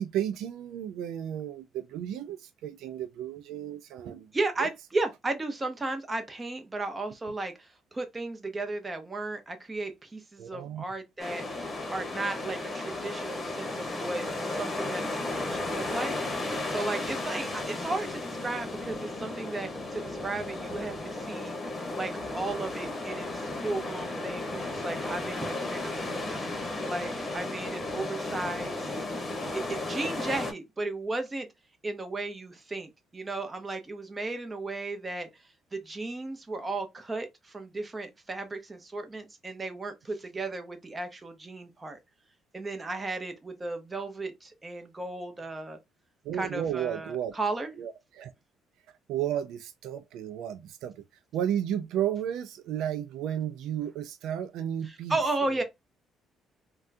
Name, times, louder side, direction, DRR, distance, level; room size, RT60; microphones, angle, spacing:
voice 1, 0.0-4.3 4.6-4.7 10.4-10.8 46.2-47.3 47.8-48.3 49.1-50.9 51.3-55.2, right 10 dB, 80° right, 0.4 m, -33 dB
voice 2, 4.3-11.5 11.9-21.6 22.0-28.9 29.7-31.5 31.8-35.3 35.7-42.0 42.5-45.8 46.3-47.7 54.9-55.6, right 2 dB, 20° right, 0.8 m, -35 dB
sound 1, 11.2-30.5, left 2 dB, 20° left, 1.1 m, -34 dB
3.5 x 2.2 x 2.6 m
cardioid pair, 115°, 0 cm